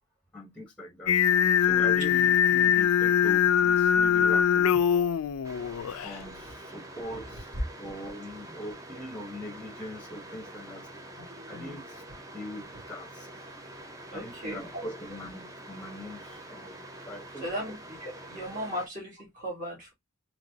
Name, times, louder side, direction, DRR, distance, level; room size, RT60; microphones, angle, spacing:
voice 1, 0.3-1.3 1.6-5.0 6.0-7.5 7.8-10.9 11.5-12.0 12.3-13.3 14.1-17.5, equal, 5° left, 0.9 m, -41 dB
Singing, 1.1-6.2, left 8 dB, 85° left, 0.4 m, -23 dB
sound 1, 5.4-18.9, right 1 dB, 15° right, 0.5 m, -46 dB
voice 2, 7.0-7.6 11.2-11.8 14.1-14.9 17.4-19.9, equal, 40° right, 2.0 m, -37 dB
3.9 x 2.9 x 2.7 m
head